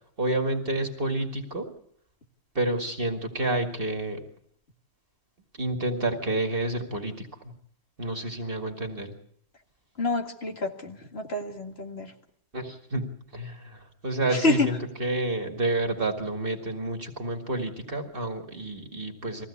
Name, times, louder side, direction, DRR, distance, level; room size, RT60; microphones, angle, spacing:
voice 1, 0.2-1.7 2.5-4.2 5.6-7.3 8.0-9.1 12.5-13.1 13.3-19.5, right 2 dB, 40° right, 3 dB, 2.3 m, -29 dB
voice 2, 10.0-12.1 14.3-14.7, left 2 dB, 45° left, 3 dB, 2.4 m, -28 dB
22.0 x 15.5 x 8.4 m, 0.67 s
omnidirectional pair, 1.5 m